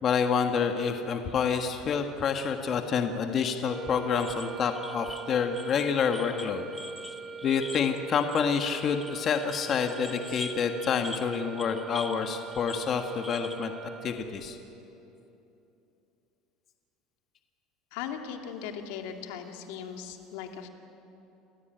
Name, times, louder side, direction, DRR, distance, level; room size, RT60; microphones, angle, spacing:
voice 1, 0.0-6.7 7.4-13.7 14.0-14.6, left 6 dB, 40° left, 5 dB, 1.7 m, -28 dB
sound 1, 3.6-14.5, right 5 dB, 40° right, 2.0 m, -42 dB
sound 2, 4.2-12.3 12.5-13.7, left 1 dB, 5° left, 1.2 m, -44 dB
voice 2, 17.9-20.7, left 8 dB, 80° left, 4 dB, 2.3 m, -38 dB
28.5 x 15.0 x 9.3 m, 2.9 s
supercardioid pair, 120°, 0 cm